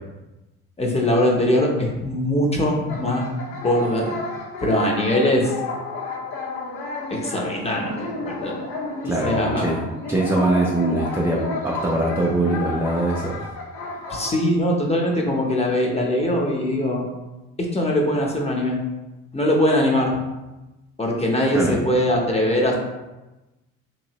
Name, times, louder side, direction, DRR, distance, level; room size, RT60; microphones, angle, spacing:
voice 1, 0.8-3.3 3.5-4.1 4.6-5.5 7.1-8.6 9.0-9.8 14.1-17.1 17.6-18.8 19.3-20.2 21.0-22.7, left 1 dB, 15° left, -1 dB, 0.8 m, -21 dB
sound 1, 2.9-14.3, left 3 dB, 70° left, 0.8 m, -31 dB
voice 2, 9.0-9.8 10.1-13.5 21.5-21.8, right 2 dB, 5° right, -3 dB, 0.4 m, -22 dB
2.9 x 2.6 x 2.9 m, 1.0 s
supercardioid pair, 65°, 37 cm